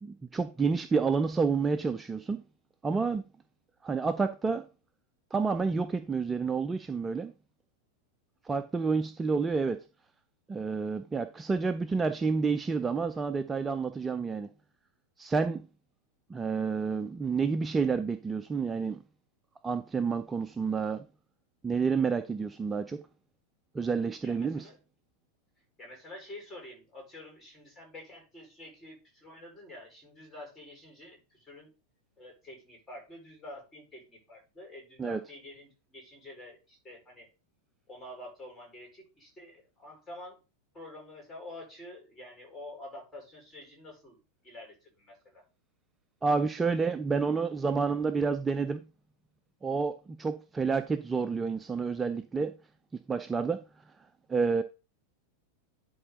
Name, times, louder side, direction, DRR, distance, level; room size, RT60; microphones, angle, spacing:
voice 1, 0.0-2.4 2.8-3.3 3.8-4.7 5.3-7.3 8.4-9.9 10.5-14.5 15.2-15.7 16.3-19.0 19.6-21.0 21.6-23.0 23.7-24.7 35.0-35.2 46.2-48.9 49.6-52.5 53.1-53.6 54.3-54.6, right 5 dB, 15° right, 0.5 m, -29 dB
voice 2, 24.2-24.8 25.8-31.7 32.2-37.3 37.9-40.4 40.7-44.2 44.4-45.4, left 1 dB, 15° left, 4.9 m, -48 dB
11.0 x 4.4 x 3.9 m
figure-of-eight pair, 90°, 0 cm